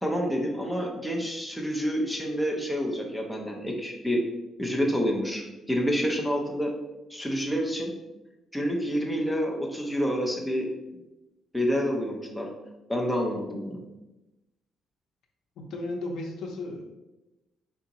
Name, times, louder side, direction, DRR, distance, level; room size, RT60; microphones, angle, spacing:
voice 1, 0.0-4.2 4.6-5.4 5.7-6.7 7.1-7.9 8.5-10.7 11.5-12.5 12.9-13.8, equal, ahead, -1 dB, 0.5 m, -28 dB
voice 2, 15.6-16.8, left 2 dB, 70° left, 2 dB, 0.7 m, -34 dB
3.9 x 3.4 x 2.9 m, 1.0 s
cardioid pair, 165°, 0 cm